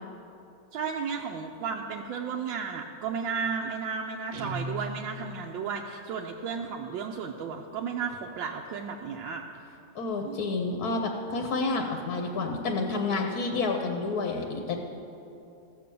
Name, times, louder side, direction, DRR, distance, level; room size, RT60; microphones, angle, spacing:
voice 1, 0.7-9.4 10.2-10.4, right 6 dB, 85° right, 1 dB, 1.4 m, -33 dB
Guitar, 4.3-5.6, right 1 dB, 70° right, 1.3 m, -37 dB
voice 2, 9.9-14.8, left 3 dB, 60° left, 3 dB, 1.2 m, -29 dB
14.5 x 6.8 x 6.8 m, 2.8 s
omnidirectional pair, 2.1 m